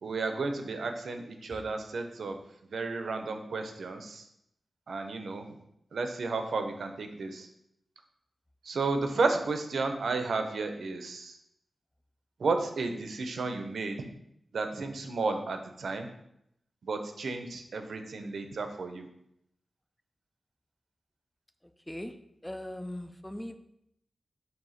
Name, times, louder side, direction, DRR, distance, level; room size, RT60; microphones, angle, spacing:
voice 1, 0.0-2.4 2.7-4.3 4.9-5.6 5.9-7.5 8.6-11.4 12.4-14.1 14.5-16.1 16.8-19.1, right 3 dB, 85° right, 6 dB, 0.8 m, -32 dB
voice 2, 22.4-23.6, left 1 dB, 5° left, 9 dB, 0.5 m, -39 dB
7.8 x 2.8 x 5.7 m, 0.76 s
wide cardioid pair, 90°, 0 cm